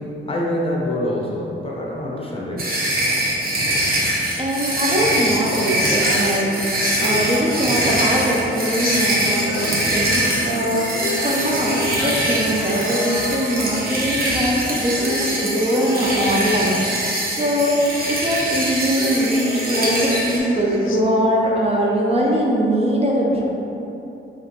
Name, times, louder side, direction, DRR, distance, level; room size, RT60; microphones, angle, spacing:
voice 1, 0.0-2.7, left 1 dB, 25° left, -3 dB, 0.7 m, -25 dB
sound 1, 2.6-20.4, right 1 dB, 45° right, 0.9 m, -23 dB
voice 2, 4.4-16.8 17.3-23.4, equal, 30° right, -3 dB, 0.5 m, -21 dB
sound 2, 5.0-21.0, left 3 dB, 75° left, 0.5 m, -31 dB
5.4 x 3.0 x 3.0 m, 2.9 s
wide cardioid pair, 110°, 21 cm